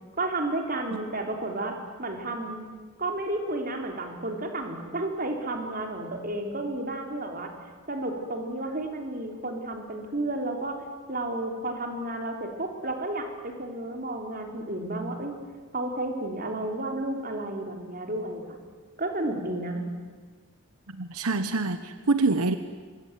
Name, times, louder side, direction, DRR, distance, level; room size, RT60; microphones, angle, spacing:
voice 1, 0.2-2.7 3.0-7.5 7.9-10.8 11.1-15.4 15.7-18.4 19.0-19.8, right 2 dB, 40° right, 3 dB, 3.5 m, -32 dB
voice 2, 20.9-22.6, right 3 dB, 85° right, 10 dB, 1.1 m, -26 dB
25.0 x 21.5 x 9.4 m, 1.5 s
head